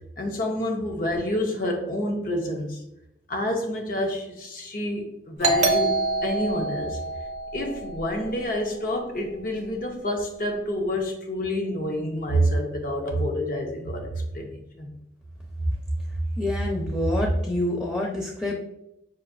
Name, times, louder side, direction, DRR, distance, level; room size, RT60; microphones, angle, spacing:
voice 1, 0.2-2.8 3.3-7.0 7.5-14.9, equal, 50° left, 2 dB, 0.7 m, -28 dB
Doorbell, 5.4-8.8, right 3 dB, 40° right, 0.6 m, -27 dB
voice 2, 16.4-18.5, left 1 dB, 10° left, -3 dB, 0.6 m, -26 dB
5.9 x 2.6 x 2.5 m, 0.82 s
head